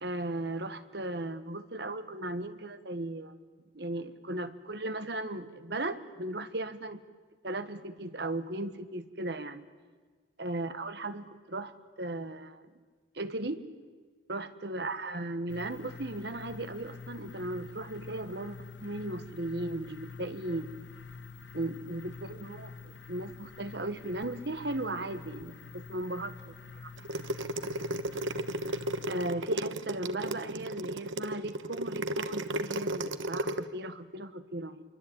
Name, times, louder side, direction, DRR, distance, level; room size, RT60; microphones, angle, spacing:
voice 1, 0.0-3.3 3.7-7.0 7.4-9.6 10.4-11.7 12.0-12.7 13.1-13.6 14.3-20.7 21.5-26.9 29.1-34.8, right 2 dB, 60° right, 10 dB, 1.6 m, -36 dB
sound 1, 15.5-29.3, left 4 dB, 70° left, 1.4 m, -47 dB
sound 2, 27.0-33.6, right 1 dB, 90° right, 1.2 m, -34 dB
27.0 x 23.5 x 8.9 m, 1.5 s
head